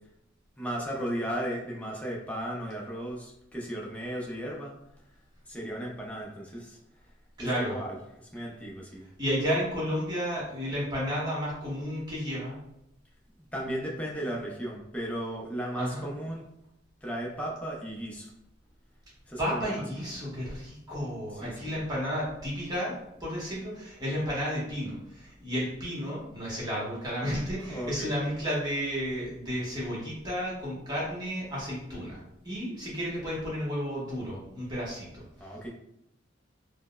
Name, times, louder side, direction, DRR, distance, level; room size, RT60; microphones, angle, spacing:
voice 1, 0.6-4.7 5.5-6.8 7.4-9.1 13.5-16.4 17.0-18.3 19.3-20.1 21.3-21.8 27.6-28.2 35.4-35.7, equal, 5° left, -3 dB, 0.5 m, -35 dB
voice 2, 7.4-7.8 9.2-12.6 15.8-16.0 19.4-35.2, equal, 20° right, -6 dB, 1.1 m, -32 dB
4.3 x 2.0 x 2.3 m, 0.82 s
head